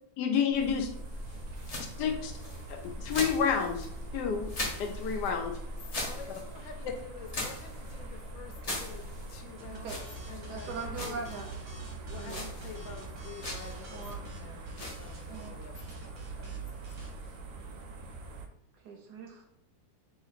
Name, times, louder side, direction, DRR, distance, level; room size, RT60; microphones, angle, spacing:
voice 1, 0.2-0.9 1.8-2.3 2.7-3.9 4.1-4.5 4.8-5.6, left 7 dB, 75° left, 4 dB, 1.1 m, -29 dB
sound 1, 0.5-17.8, left 1 dB, 50° left, 0.4 m, -42 dB
sound 2, 0.6-18.5, right 2 dB, 90° right, 1.3 m, -45 dB
voice 2, 5.9-11.2 12.1-16.8, left 6 dB, 90° left, 5 dB, 1.4 m, -49 dB
sound 3, 9.6-17.1, right 3 dB, 50° right, 1.0 m, -47 dB
voice 3, 10.5-11.5 12.1-12.4 13.9-14.2 15.3-15.6 18.8-19.5, right 4 dB, 70° right, 2 dB, 1.1 m, -41 dB
3.1 x 3.0 x 4.0 m, 0.79 s
omnidirectional pair, 2.0 m